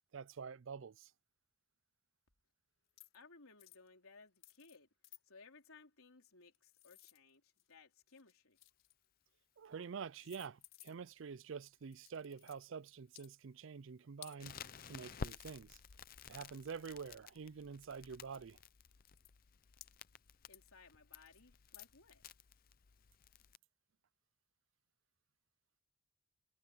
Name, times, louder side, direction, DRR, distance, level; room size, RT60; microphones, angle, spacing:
voice 1, 0.1-1.1 9.6-15.8 16.3-18.6, right 6 dB, 60° right, 0.4 m, -48 dB
sound 1, 2.9-3.2 3.6-3.9 4.4-4.8 5.0-5.2 6.3-7.7 8.1-9.1 9.8-9.9 10.1-11.2 11.9-12.6 13.1-13.3 14.2-14.4 15.9-16.0 16.3-17.4 18.1-18.2 18.6-18.7 19.0-19.3 19.8-20.3 20.5-20.7 21.1-21.4 21.7-21.9, left 16 dB, 65° left, 5.8 m, -59 dB
voice 2, 3.1-4.9 5.2-8.6 20.5-22.2, left 4 dB, 80° left, 3.7 m, -61 dB
Crackle, 14.4-23.6, left 5 dB, 40° left, 0.6 m, -53 dB
head